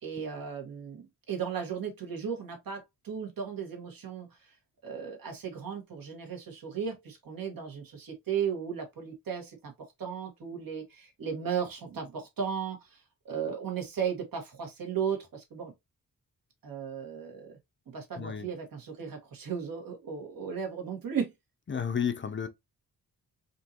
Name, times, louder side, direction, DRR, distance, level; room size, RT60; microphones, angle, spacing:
voice 1, 0.0-4.5 4.8-15.7 16.6-17.6 17.9-21.3, right 7 dB, 75° right, 1.6 m, -36 dB
voice 2, 18.2-18.5 21.7-22.5, left 7 dB, 35° left, 0.5 m, -31 dB
4.4 x 2.7 x 2.8 m
wide cardioid pair, 145°, 35 cm